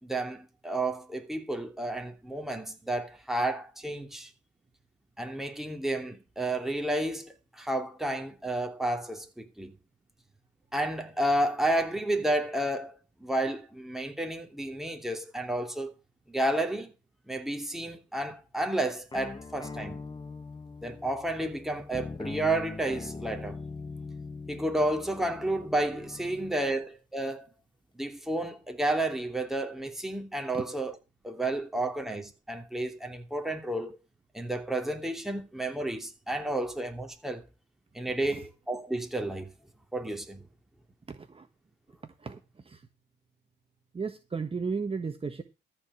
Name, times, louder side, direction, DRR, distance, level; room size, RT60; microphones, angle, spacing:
voice 1, 0.0-4.3 5.2-9.7 10.7-12.9 13.2-15.9 16.3-16.9 17.3-20.0 20.8-23.6 24.5-27.5 27.9-31.0 31.2-34.0 34.3-37.4 37.9-39.5 39.9-40.4, right 1 dB, ahead, 2.9 m, -31 dB
sound 1, 19.1-26.6, left 4 dB, 20° left, 1.3 m, -41 dB
voice 2, 41.1-41.5 42.0-42.8 43.9-45.4, right 5 dB, 30° right, 1.4 m, -35 dB
14.0 x 4.9 x 7.6 m
cardioid pair, 90°, 20 cm